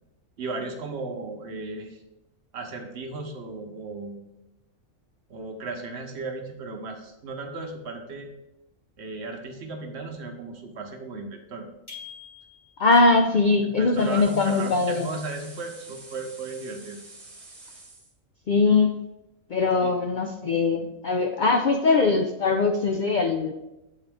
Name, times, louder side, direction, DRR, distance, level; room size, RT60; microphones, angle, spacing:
voice 1, 0.4-2.0 2.5-4.2 5.3-8.3 9.0-11.7 13.6-17.0 19.8-19.9, right 3 dB, 60° right, 4 dB, 1.0 m, -36 dB
sound 1, 11.9-13.0, left 7 dB, 20° left, 1.7 m, -44 dB
voice 2, 12.8-15.1 18.5-19.0 19.5-23.5, left 3 dB, 65° left, 4 dB, 0.4 m, -21 dB
sound 2, 13.9-18.1, right 2 dB, 30° right, 1.1 m, -46 dB
8.0 x 3.7 x 3.4 m, 0.93 s
omnidirectional pair, 1.4 m